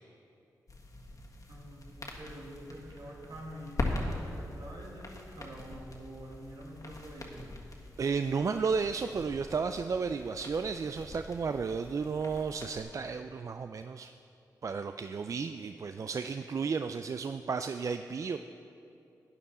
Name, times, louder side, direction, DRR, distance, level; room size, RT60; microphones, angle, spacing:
sound 1, 0.7-12.8, left 2 dB, 50° left, 1.6 m, -42 dB
voice 1, 1.5-7.6, equal, 70° right, -2 dB, 2.0 m, -47 dB
voice 2, 8.0-14.1 14.6-18.4, right 5 dB, 45° right, 8 dB, 0.3 m, -33 dB
12.0 x 9.6 x 4.2 m, 2.7 s
cardioid pair, 50°, 7 cm